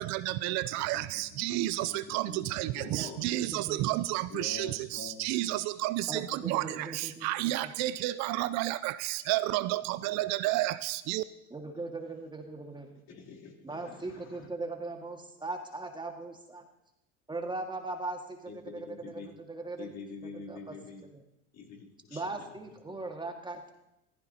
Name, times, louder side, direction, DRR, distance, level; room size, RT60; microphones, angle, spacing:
voice 1, 0.0-11.2, right 16 dB, 55° right, 15 dB, 0.5 m, -31 dB
voice 2, 0.7-2.0 2.3-2.5 2.7-3.2 4.3-5.2 6.7-6.8 13.1-14.5 18.5-19.3 19.8-21.0 21.5-22.5 22.9-23.0, left 5 dB, 50° left, -1 dB, 3.2 m, -46 dB
voice 3, 2.9-4.0 6.1-7.3 7.6-7.7 11.5-13.0 13.6-16.6 17.3-19.9 20.2-20.8 21.1-21.2 22.1-23.7, right 3 dB, 15° right, 3 dB, 1.9 m, -39 dB
15.0 x 14.5 x 2.9 m, 0.89 s
hypercardioid pair, 75°, 33 cm